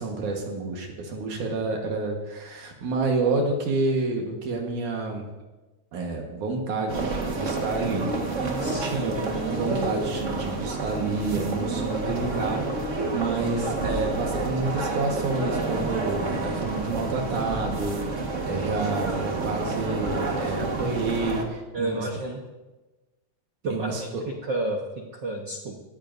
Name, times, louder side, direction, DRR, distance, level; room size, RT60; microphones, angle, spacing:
voice 1, 0.0-5.2 5.9-22.1 23.7-24.2, right 3 dB, 75° right, 1 dB, 2.9 m, -29 dB
sound 1, 6.9-21.4, right 3 dB, 40° right, 1.1 m, -29 dB
voice 2, 8.3-9.7 21.7-22.4 23.6-24.1 24.4-25.7, right 2 dB, 90° right, 1 dB, 0.9 m, -32 dB
18.5 x 14.0 x 2.6 m, 1.1 s
omnidirectional pair, 3.6 m